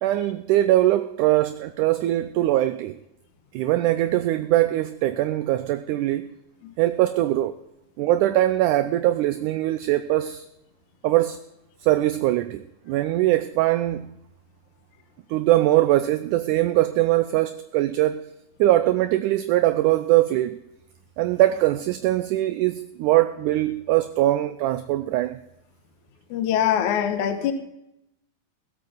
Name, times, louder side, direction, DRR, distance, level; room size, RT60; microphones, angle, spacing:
voice 1, 0.0-3.0 3.5-6.3 6.8-7.5 8.0-10.5 11.0-11.4 11.8-14.2 15.3-18.3 18.6-20.6 21.2-25.4, right 15 dB, 80° right, 1.9 m, -22 dB
voice 2, 26.3-27.5, left 10 dB, 70° left, 2.2 m, -23 dB
20.0 x 8.4 x 5.1 m
omnidirectional pair, 4.1 m